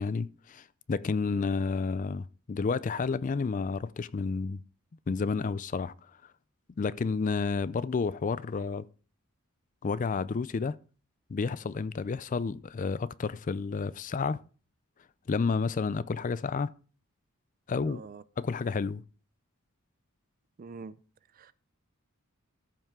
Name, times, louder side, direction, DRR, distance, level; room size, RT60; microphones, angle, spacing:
voice 1, 0.0-4.6 5.1-5.9 6.8-8.9 9.8-10.7 11.3-14.4 15.3-16.7 17.7-18.0 18.4-19.0, left 4 dB, 35° left, 0.4 m, -30 dB
voice 2, 17.8-18.2 20.6-21.0 21.3-21.5, right 4 dB, 40° right, 0.4 m, -44 dB
13.5 x 5.6 x 3.6 m
head